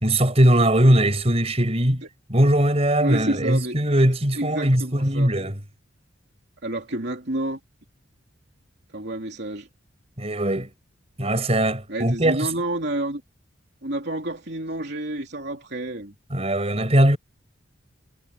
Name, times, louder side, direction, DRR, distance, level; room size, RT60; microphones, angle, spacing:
voice 1, 0.0-2.0 2.3-5.6 10.2-10.7 11.2-12.5 16.3-17.2, right 1 dB, 30° right, 5.4 m, -20 dB
voice 2, 3.0-3.7 4.3-5.3 6.6-7.6 8.9-9.7 11.9-13.2 13.8-16.1, right 1 dB, 55° right, 3.3 m, -29 dB
head